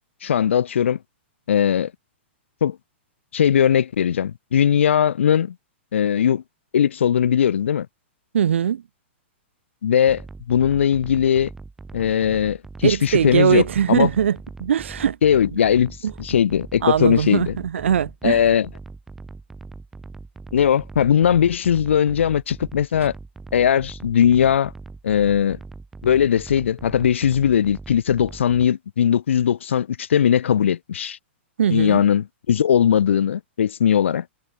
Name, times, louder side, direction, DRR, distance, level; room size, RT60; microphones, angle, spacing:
voice 1, 0.2-1.0 1.5-1.9 2.6-2.8 3.3-5.5 5.9-6.4 6.7-7.9 9.8-10.2 10.5-11.5 11.9-12.6 12.8-14.1 15.2-17.5 18.2-18.7 20.5-23.1 23.5-24.7 25.0-25.6 26.0-31.2 31.7-34.2, left 9 dB, 80° left, 2.0 m, -19 dB
voice 2, 8.3-8.8 12.8-15.2 16.0-16.1 16.8-18.4 31.6-32.0, right 9 dB, 75° right, 3.7 m, -20 dB
sound 1, 10.1-28.7, right 3 dB, 5° right, 5.7 m, -40 dB
hypercardioid pair, 175°, 7 cm